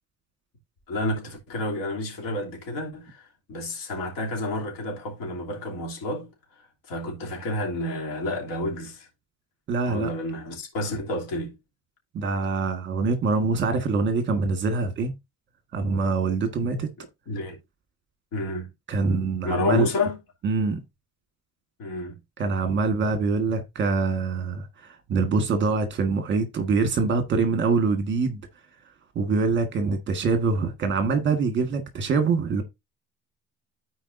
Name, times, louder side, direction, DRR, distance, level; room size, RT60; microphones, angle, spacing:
voice 1, 0.9-6.3 6.9-9.1 9.8-11.5 16.7-16.8 17.3-17.6 18.3-18.7 19.4-20.2 21.8-22.1, left 2 dB, 90° left, 3.0 m, -30 dB
voice 2, 9.7-10.1 12.1-15.1 15.7-16.9 18.9-19.9 20.4-20.8 22.4-28.4 29.1-32.6, right 4 dB, 35° right, 1.6 m, -24 dB
14.0 x 4.6 x 2.6 m
cardioid pair, 170°, 33 cm